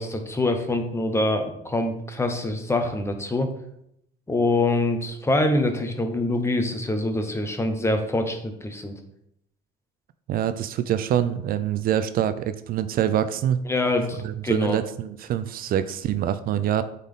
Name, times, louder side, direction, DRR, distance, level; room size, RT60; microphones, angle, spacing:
voice 1, 0.0-3.5 4.3-8.9 13.7-14.8, left 2 dB, 15° left, 6 dB, 1.0 m, -25 dB
voice 2, 10.3-13.6 14.2-16.8, right 10 dB, 60° right, 12 dB, 0.4 m, -25 dB
8.3 x 4.1 x 3.7 m, 0.74 s
cardioid pair, 110°, 17 cm